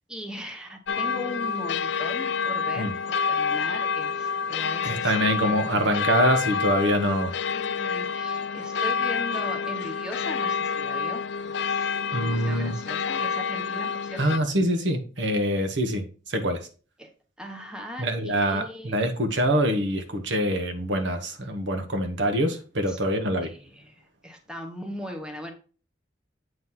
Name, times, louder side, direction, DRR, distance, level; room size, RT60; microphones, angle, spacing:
voice 1, 0.1-6.1 7.3-14.2 17.0-17.1 17.4-19.1 22.9-23.0 23.4-25.5, left 1 dB, 5° right, 3 dB, 0.8 m, -39 dB
sound 1, 0.9-14.4, left 6 dB, 70° left, 0.5 m, -28 dB
voice 2, 4.8-7.3 12.1-12.7 14.2-16.7 18.0-23.5, equal, 70° right, 6 dB, 1.1 m, -25 dB
7.9 x 3.1 x 5.5 m, 0.38 s
head